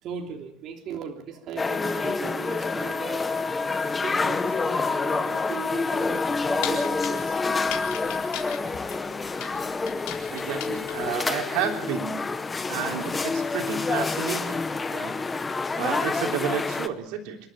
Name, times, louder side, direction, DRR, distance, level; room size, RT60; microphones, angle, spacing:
voice 1, 0.0-3.3 4.0-7.4, right 6 dB, 45° right, 2 dB, 3.4 m, -38 dB
sound 1, 1.6-16.9, left 4 dB, 15° left, 1.0 m, -28 dB
sound 2, 6.0-11.2, left 11 dB, 70° left, 3.9 m, -38 dB
voice 2, 10.3-12.2 12.7-14.6 14.9-15.2 15.8-17.4, right 8 dB, 85° right, 4 dB, 3.3 m, -31 dB
28.0 x 12.5 x 8.7 m, 0.67 s
cardioid pair, 160°, 0 cm